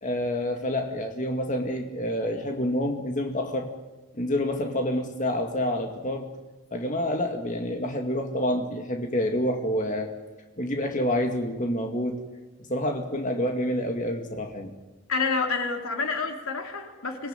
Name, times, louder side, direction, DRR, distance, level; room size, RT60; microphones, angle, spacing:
voice 1, 0.0-3.7 4.1-6.3 6.7-10.1 10.6-12.2 12.7-14.7, left 1 dB, 35° left, 3 dB, 2.3 m, -28 dB
voice 2, 15.1-17.3, left 4 dB, 90° left, 4 dB, 3.2 m, -28 dB
26.5 x 19.5 x 9.2 m, 1.1 s
head